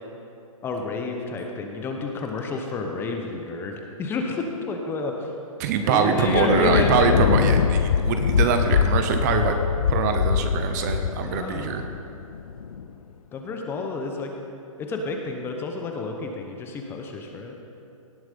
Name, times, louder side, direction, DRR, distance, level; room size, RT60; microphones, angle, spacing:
voice 1, 0.6-5.3 5.8-7.2 11.1-11.7 13.3-14.3 14.8-17.6, left 3 dB, 10° left, 2 dB, 1.0 m, -30 dB
voice 2, 5.6-9.6 9.8-11.8, right 5 dB, 30° right, 7 dB, 0.8 m, -23 dB
Thunder, 6.2-12.8, left 7 dB, 80° left, 0.7 m, -23 dB
17.5 x 7.9 x 5.3 m, 2.8 s
hypercardioid pair, 150°, 18 cm